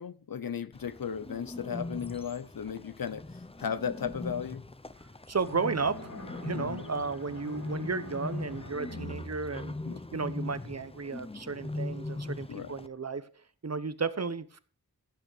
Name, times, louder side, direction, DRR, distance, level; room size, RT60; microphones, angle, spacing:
voice 1, 0.0-3.3 3.6-4.6 6.5-6.8 9.8-10.0 12.5-12.7, left 7 dB, 65° left, 0.7 m, -35 dB
Bird, 0.7-12.9, left 2 dB, 15° left, 0.7 m, -40 dB
voice 2, 5.3-6.1 6.4-9.7 10.1-13.3 13.6-14.6, right 4 dB, 45° right, 0.9 m, -33 dB
Bowed string instrument, 5.4-10.4, equal, 50° left, 5.1 m, -45 dB
15.0 x 6.8 x 5.0 m
wide cardioid pair, 65°, 37 cm